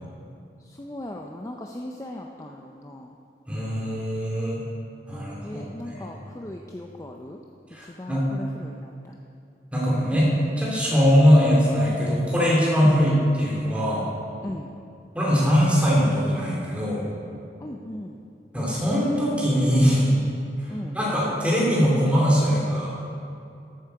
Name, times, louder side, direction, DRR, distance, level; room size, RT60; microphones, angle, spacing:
voice 1, 0.6-3.1 5.4-7.4 7.8-9.2 12.8-12.9 14.4-14.7 17.6-18.2 20.7-21.0, left 1 dB, 15° left, 1 dB, 0.5 m, -38 dB
voice 2, 3.5-4.6 5.1-6.1 7.7-8.2 9.7-10.3 10.6-14.1 15.1-17.1 18.5-20.1 20.6-20.7 20.9-23.0, equal, 5° right, -6 dB, 2.6 m, -21 dB
13.5 x 8.4 x 4.6 m, 2.6 s
head